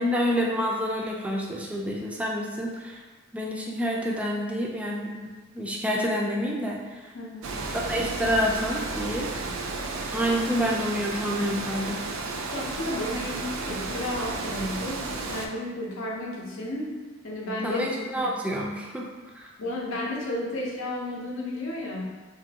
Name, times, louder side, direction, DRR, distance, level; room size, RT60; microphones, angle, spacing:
voice 1, 0.0-3.0 3.3-5.3 5.5-7.1 7.7-9.3 10.1-12.0 17.6-19.1 19.3-19.5, equal, 5° right, -2 dB, 0.3 m, -28 dB
voice 2, 7.1-7.5 12.5-16.9 17.2-17.8 18.1-18.3 19.6-22.0, left 1 dB, 75° left, -3 dB, 0.6 m, -32 dB
Water, 7.4-15.5, right 3 dB, 80° right, 0.4 m, -33 dB
3.0 x 2.5 x 2.7 m, 1.3 s
head